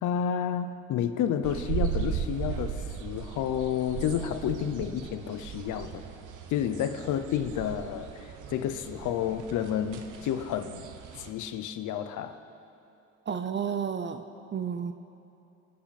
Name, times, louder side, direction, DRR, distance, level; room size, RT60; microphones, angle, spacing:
voice 1, 0.0-6.0 6.5-10.8 11.2-12.4, left 9 dB, 80° left, 10 dB, 0.7 m, -30 dB
sound 1, 1.4-11.3, right 8 dB, 80° right, 1.0 m, -37 dB
voice 2, 13.3-14.2 14.5-14.9, right 7 dB, 40° right, 9 dB, 0.6 m, -31 dB
24.0 x 8.6 x 4.2 m, 2.8 s
cardioid pair, 90°, 30 cm